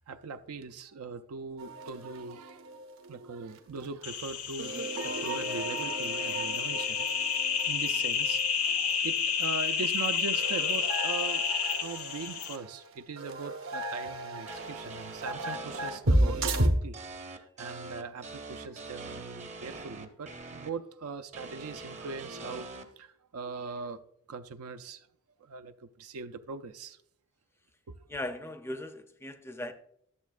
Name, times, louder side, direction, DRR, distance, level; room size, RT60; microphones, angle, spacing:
voice 1, 0.1-7.4 7.7-11.4 11.8-24.0 24.3-25.1 25.4-27.0, right 4 dB, 80° right, 0.5 m, -41 dB
sound 1, 1.6-3.1 3.4-3.6 3.8-3.9 4.6-8.6 8.9-9.0 10.3-16.7, right 1 dB, 65° right, 1.0 m, -33 dB
sound 2, 4.0-12.6, left 6 dB, 80° left, 0.8 m, -30 dB
sound 3, 14.5-16.0 16.9-20.7 21.3-22.8, right 3 dB, 30° right, 0.7 m, -43 dB
voice 2, 28.1-29.7, left 1 dB, 10° left, 0.4 m, -38 dB
11.5 x 7.1 x 2.4 m
head